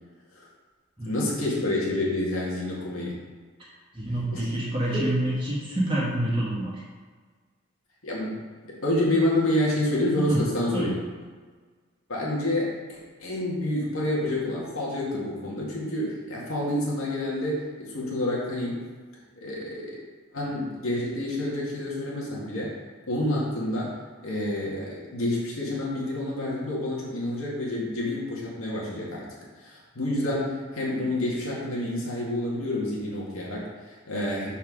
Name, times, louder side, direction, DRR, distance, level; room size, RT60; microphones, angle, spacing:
voice 1, 1.0-3.2 4.3-4.5 4.9-5.1 8.0-10.9 12.1-18.8 19.4-19.9 20.3-22.7 23.1-23.9 24.2-29.2 29.6-34.5, left 1 dB, 85° left, -5 dB, 2.1 m, -28 dB
voice 2, 3.9-6.8 10.3-10.4 10.7-10.9, right 1 dB, 25° right, -6 dB, 1.5 m, -27 dB
5.7 x 4.7 x 6.0 m, 1.5 s
head